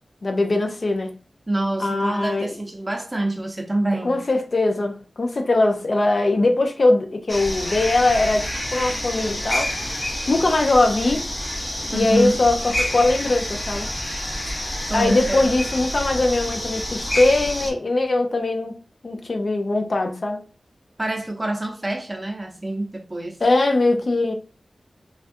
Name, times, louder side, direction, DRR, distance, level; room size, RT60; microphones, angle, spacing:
voice 1, 0.2-1.1 1.8-2.5 4.0-9.7 10.3-11.2 11.9-13.9 14.9-18.8 19.0-20.4 23.4-24.3, left 2 dB, 55° left, 0.4 m, -21 dB
voice 2, 1.5-4.2 11.9-12.4 14.9-15.5 21.0-23.4, right 1 dB, 20° right, 0.7 m, -26 dB
sound 1, 7.3-17.7, equal, 25° left, 0.8 m, -28 dB
3.4 x 2.4 x 2.5 m
wide cardioid pair, 95°, 0 cm